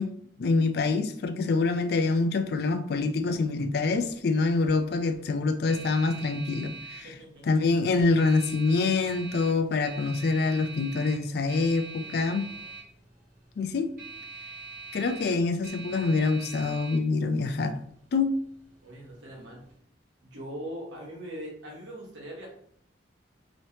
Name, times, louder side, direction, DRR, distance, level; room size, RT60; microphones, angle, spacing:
voice 1, 0.0-7.1 7.4-12.5 13.6-13.9 14.9-17.7 18.1-18.3, left 3 dB, 55° left, 8 dB, 0.3 m, -26 dB
sound 1, 3.0-19.8, right 4 dB, 45° right, 1.1 m, -45 dB
voice 2, 7.0-7.4 18.8-19.6 20.2-22.5, right 1 dB, 80° right, -3 dB, 1.3 m, -41 dB
3.1 x 3.0 x 2.8 m, 0.64 s
head